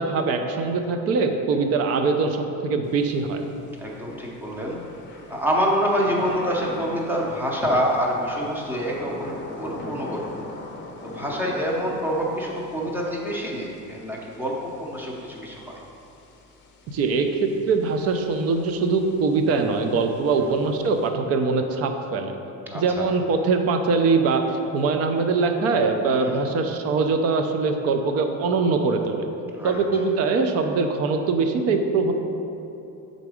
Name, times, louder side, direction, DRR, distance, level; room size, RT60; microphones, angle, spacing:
voice 1, 0.0-3.4 16.9-22.4 22.7-29.3 29.6-32.1, right 4 dB, 45° right, 6 dB, 0.5 m, -22 dB
Thunder / Rain, 2.9-21.1, left 2 dB, 35° left, 0.7 m, -42 dB
voice 2, 3.8-4.8 5.3-10.3 11.0-15.8 20.4-20.6 22.7-23.1 26.2-26.5 29.5-29.7, equal, 5° right, -3 dB, 0.7 m, -26 dB
6.9 x 3.9 x 4.8 m, 2.8 s
cardioid pair, 165°, 33 cm